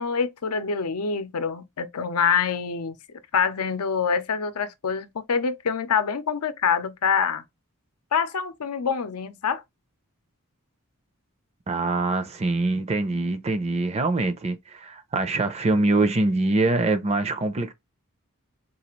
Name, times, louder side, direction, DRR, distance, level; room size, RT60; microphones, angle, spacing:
voice 1, 0.0-3.0 3.3-7.4 8.1-9.6, left 6 dB, 80° left, 0.6 m, -25 dB
voice 2, 11.7-17.7, right 2 dB, 30° right, 0.5 m, -24 dB
4.0 x 2.4 x 3.0 m
head